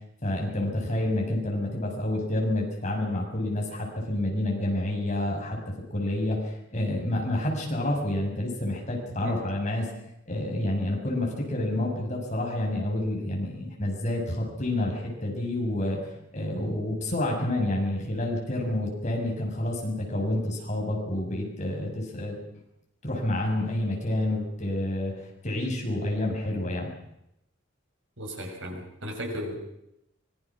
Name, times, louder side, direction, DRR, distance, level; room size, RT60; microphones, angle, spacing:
voice 1, 0.2-5.6 5.9-9.9 10.3-16.0 16.3-22.4 23.0-26.9, left 1 dB, 35° left, 0 dB, 7.2 m, -29 dB
voice 2, 28.2-29.6, equal, 70° right, 2 dB, 6.3 m, -35 dB
25.5 x 22.0 x 6.2 m, 0.81 s
head